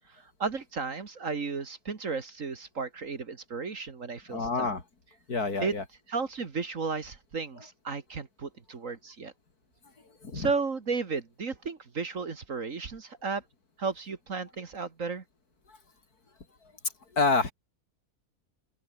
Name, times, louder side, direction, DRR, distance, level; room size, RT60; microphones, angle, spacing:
voice 1, 0.4-4.7 5.6-5.7 6.1-9.3 10.3-13.4 13.8-15.2, right 4 dB, 55° right, 2.2 m, -34 dB
voice 2, 4.3-4.8 5.3-5.8 10.2-10.5 17.2-17.5, left 3 dB, 75° left, 4.0 m, -27 dB
open air
omnidirectional pair, 1.6 m